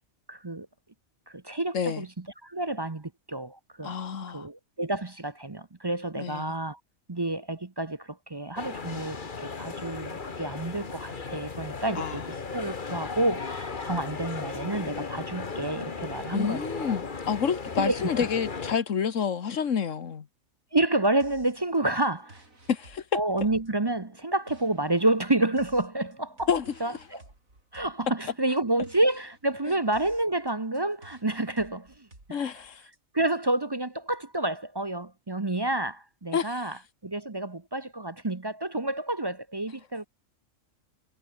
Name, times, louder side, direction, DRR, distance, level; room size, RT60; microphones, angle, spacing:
voice 1, 0.3-0.7 1.3-4.0 4.3-6.8 7.1-12.2 12.5-16.6 17.8-18.0 20.7-22.4 23.1-26.5 26.8-27.2 27.7-32.4 33.1-36.8 37.0-40.1, right 2 dB, 20° right, 0.8 m, -29 dB
voice 2, 1.7-2.1 3.8-4.5 6.2-6.5 12.0-12.2 16.3-20.3 22.7-23.0 26.5-26.7 32.3-32.8 36.3-36.7, left 7 dB, 70° left, 1.7 m, -29 dB
sound 1, 8.6-18.8, left 4 dB, 40° left, 1.6 m, -36 dB
sound 2, 21.2-33.0, right 2 dB, 85° right, 6.4 m, -55 dB
omnidirectional pair, 1.4 m